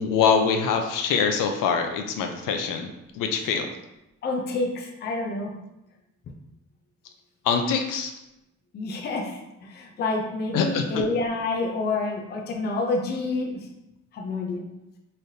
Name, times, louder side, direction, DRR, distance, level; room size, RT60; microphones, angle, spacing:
voice 1, 0.0-2.9 3.1-3.7 7.4-8.1 10.5-11.1, left 6 dB, 75° left, 5 dB, 0.6 m, -24 dB
voice 2, 4.2-5.6 8.7-13.7 14.1-14.7, left 3 dB, 30° left, 1 dB, 0.4 m, -28 dB
4.0 x 3.2 x 2.6 m, 0.91 s
cardioid pair, 180°, 32 cm